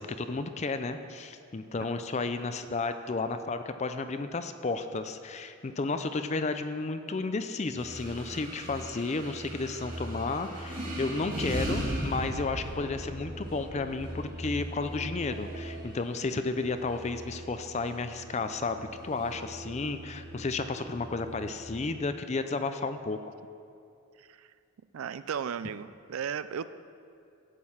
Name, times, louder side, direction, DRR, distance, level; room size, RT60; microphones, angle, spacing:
voice 1, 0.0-23.3, left 3 dB, 30° left, 9 dB, 0.4 m, -32 dB
sound 1, 7.8-21.5, right 1 dB, 40° right, 2.2 m, -39 dB
voice 2, 24.9-26.7, right 7 dB, 85° right, 13 dB, 0.4 m, -35 dB
13.0 x 8.5 x 5.7 m, 2.5 s
head